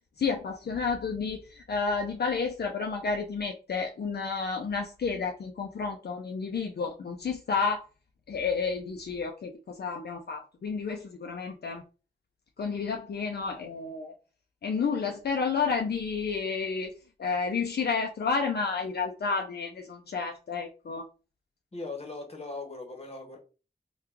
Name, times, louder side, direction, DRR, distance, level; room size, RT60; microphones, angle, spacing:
voice 1, 0.2-7.9 8.3-11.8 12.6-14.1 14.6-16.9 17.2-21.1, left 5 dB, 70° left, 0.4 m, -31 dB
voice 2, 21.7-23.4, left 3 dB, 35° left, 1.1 m, -39 dB
2.9 x 2.3 x 3.5 m
wide cardioid pair, 65°, 17 cm